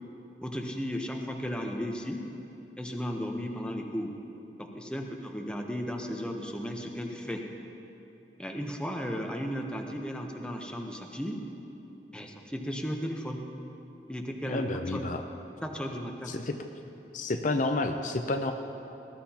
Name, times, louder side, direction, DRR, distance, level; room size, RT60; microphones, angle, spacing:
voice 1, 0.4-2.2 2.8-4.1 4.6-7.4 8.4-11.4 12.1-13.4 14.1-14.6 14.9-15.1 15.6-16.3, equal, 5° left, 2 dB, 0.8 m, -35 dB
voice 2, 14.4-15.2 16.3-16.6 17.1-18.5, left 2 dB, 45° left, 6 dB, 0.5 m, -30 dB
19.0 x 13.5 x 2.9 m, 3.0 s
head